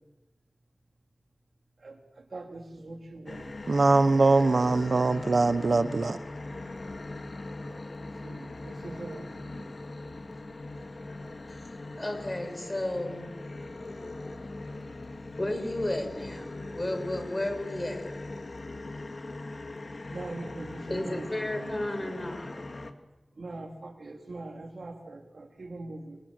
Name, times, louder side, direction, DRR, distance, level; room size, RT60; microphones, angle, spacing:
voice 1, 1.8-3.5 8.2-9.7 20.1-21.3 21.5-21.7 22.0-22.1 23.4-26.2, right 2 dB, 85° right, 3 dB, 3.9 m, -42 dB
sound 1, 3.3-22.9, left 2 dB, 60° left, 2.2 m, -40 dB
voice 2, 3.7-6.2, right 3 dB, 70° right, 11 dB, 1.0 m, -22 dB
voice 3, 12.0-13.4 15.4-18.1 20.8-22.6, left 1 dB, 30° left, 6 dB, 6.2 m, -33 dB
28.5 x 25.5 x 7.9 m, 1.1 s
wide cardioid pair, 80°, 0 cm